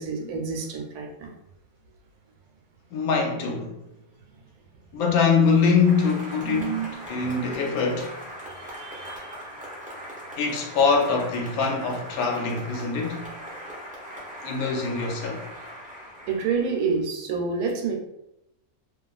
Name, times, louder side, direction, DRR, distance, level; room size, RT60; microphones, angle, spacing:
voice 1, 0.0-1.3 6.4-7.4 8.4-9.3 16.3-17.9, right 5 dB, 85° right, 1.1 m, -29 dB
voice 2, 2.9-3.8 4.9-6.8 7.1-8.1 10.4-13.3 14.4-15.5, left 5 dB, 75° left, 1.0 m, -23 dB
Applause, 5.5-17.0, equal, 10° right, 0.4 m, -40 dB
2.9 x 2.3 x 2.3 m
omnidirectional pair, 1.6 m